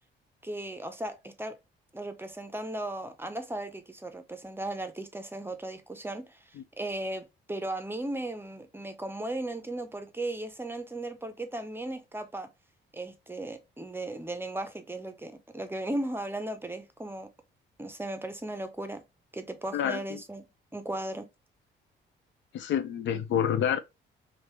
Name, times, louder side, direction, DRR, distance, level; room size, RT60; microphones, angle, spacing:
voice 1, 0.4-1.6 1.9-6.4 6.8-12.5 12.9-17.3 17.8-19.0 19.3-21.3, right 1 dB, 10° right, 0.6 m, -36 dB
voice 2, 19.7-20.2 22.5-23.8, left 9 dB, 70° left, 0.5 m, -28 dB
3.3 x 2.6 x 3.1 m
cardioid pair, 90°, 20 cm